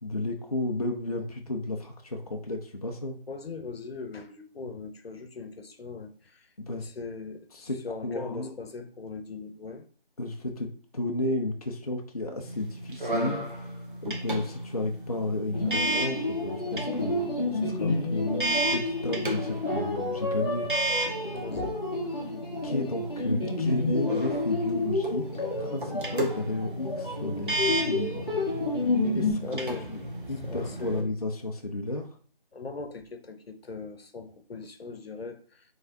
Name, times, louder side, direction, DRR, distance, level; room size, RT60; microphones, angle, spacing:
voice 1, 0.0-3.2 6.6-6.9 7.5-8.5 10.2-13.4 14.0-20.7 22.2-22.3 22.6-28.3 29.1-29.4 29.9-30.0 30.3-32.1, left 2 dB, 40° left, 0.4 m, -33 dB
voice 2, 3.3-6.5 6.7-9.9 21.3-21.8 29.4-29.9 30.4-31.1 32.5-35.6, left 4 dB, 85° left, 0.8 m, -40 dB
sound 1, 12.4-31.0, right 2 dB, 60° right, 1.1 m, -34 dB
sound 2, 15.5-29.3, left 2 dB, 25° left, 1.1 m, -30 dB
4.8 x 3.3 x 2.7 m
figure-of-eight pair, 170°, 29 cm